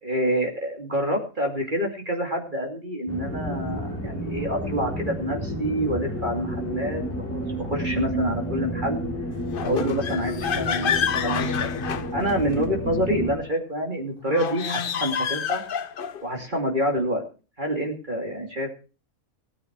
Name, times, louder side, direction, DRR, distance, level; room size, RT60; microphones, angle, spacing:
voice 1, 0.0-7.0 7.3-9.1 9.6-15.6 16.2-17.2 17.6-18.7, equal, 35° right, 1 dB, 2.7 m, -27 dB
sound 1, 3.1-13.4, equal, 10° left, 3.0 m, -31 dB
sound 2, 9.5-12.6 14.2-16.3, left 7 dB, 50° left, 0.8 m, -28 dB
17.5 x 9.6 x 4.6 m, 0.35 s
omnidirectional pair, 1.5 m